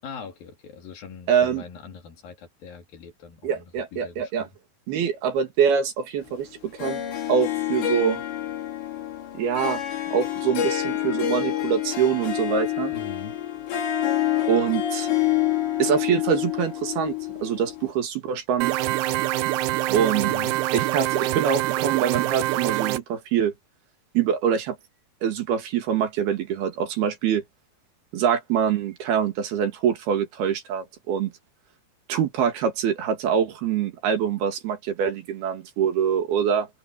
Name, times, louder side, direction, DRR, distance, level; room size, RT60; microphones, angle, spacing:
voice 1, 0.0-4.5 12.9-13.4 20.1-20.6, left 5 dB, 60° left, 4.2 m, -41 dB
voice 2, 1.3-1.6 3.4-4.5 4.9-7.0 7.3-8.2 9.4-9.8 10.1-12.9 14.5-15.1 15.8-18.7 19.9-20.3 20.7-23.5 24.1-24.8 25.2-27.4 28.1-31.3 32.1-36.7, right 8 dB, 70° right, 3.8 m, -24 dB
Harp, 6.8-17.9, left 12 dB, 85° left, 5.5 m, -27 dB
sound 1, 18.6-23.0, right 16 dB, 85° right, 2.8 m, -25 dB
omnidirectional pair, 4.9 m